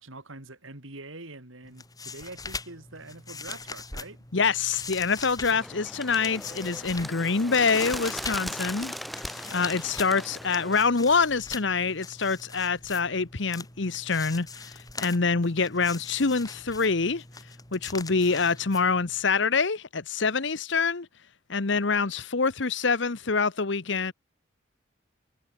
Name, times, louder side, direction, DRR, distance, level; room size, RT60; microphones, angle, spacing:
voice 1, 0.0-4.2, right 2 dB, 80° right, 3.8 m, -44 dB
sound 1, 1.6-19.2, left 4 dB, 20° left, 4.8 m, -42 dB
voice 2, 4.3-8.9 9.5-17.2 17.7-21.1 21.5-24.1, left 4 dB, 60° left, 1.0 m, -26 dB
Bird, 5.5-10.8, equal, ahead, 1.1 m, -38 dB
head